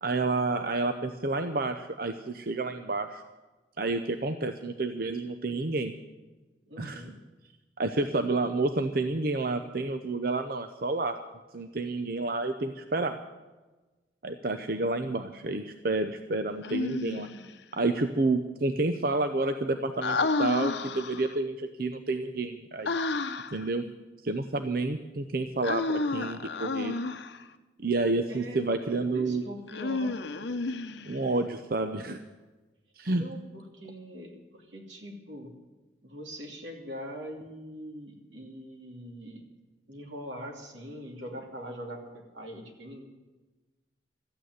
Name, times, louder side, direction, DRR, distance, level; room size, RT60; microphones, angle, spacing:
voice 1, 0.0-3.2 3.8-5.9 6.8-7.0 7.8-11.2 11.5-13.2 14.2-17.3 17.8-23.0 23.5-23.8 24.2-26.9 27.8-29.4 31.0-32.2 33.0-33.2, right 2 dB, 50° right, 7 dB, 0.7 m, -29 dB
voice 2, 6.7-7.2 28.3-28.6 29.0-30.2 33.1-35.6 36.0-39.4 39.9-43.0, equal, 85° right, 2 dB, 2.8 m, -42 dB
Human voice, 16.6-17.5 20.0-21.4 22.8-23.6 25.6-27.4 29.7-31.3, left 3 dB, 70° left, 0.8 m, -31 dB
14.0 x 9.0 x 9.4 m, 1.2 s
head